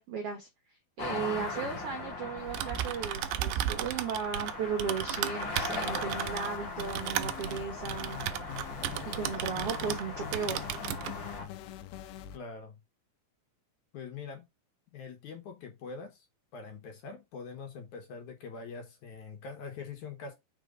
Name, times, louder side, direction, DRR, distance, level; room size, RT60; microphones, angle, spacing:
voice 1, 0.0-8.2 9.0-10.7, right 6 dB, 75° right, 1.3 m, -36 dB
sound 1, 1.0-11.5, left 3 dB, 45° left, 1.7 m, -40 dB
Typing, 2.4-10.1 10.3-11.1, right 12 dB, 90° right, 1.8 m, -35 dB
sound 2, 5.5-12.4, left 10 dB, 85° left, 2.5 m, -44 dB
voice 2, 12.3-12.8 13.9-14.4 14.9-16.3 16.5-20.3, left 5 dB, 65° left, 2.3 m, -43 dB
5.0 x 4.5 x 5.1 m
omnidirectional pair, 4.2 m